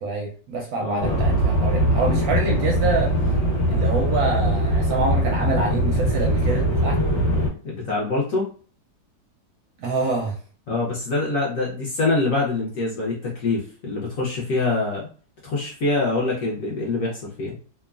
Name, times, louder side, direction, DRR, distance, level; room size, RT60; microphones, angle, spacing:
voice 1, 0.0-3.2 3.7-7.0 9.8-10.4, right 3 dB, 70° right, 1 dB, 0.9 m, -26 dB
voice 2, 0.8-1.3 7.6-8.5 10.7-15.1 15.4-17.5, left 3 dB, 65° left, -3 dB, 0.8 m, -25 dB
sound 1, 1.0-7.5, equal, 40° left, 1.2 m, -21 dB
3.0 x 2.1 x 2.3 m, 0.42 s
omnidirectional pair, 1.9 m